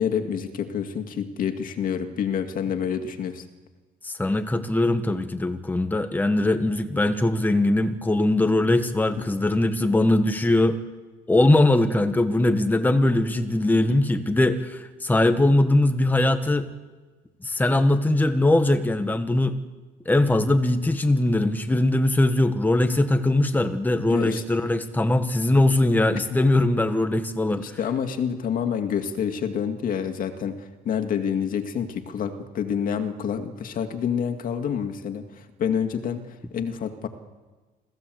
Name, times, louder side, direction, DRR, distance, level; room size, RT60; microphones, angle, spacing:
voice 1, 0.0-3.4 24.1-24.4 27.6-37.1, left 7 dB, 55° left, 7 dB, 2.2 m, -28 dB
voice 2, 4.0-10.8 11.3-16.7 17.4-19.6 20.0-27.8, left 1 dB, 10° left, 8 dB, 1.4 m, -21 dB
28.0 x 15.5 x 7.8 m, 1.3 s
cardioid pair, 110°, 17 cm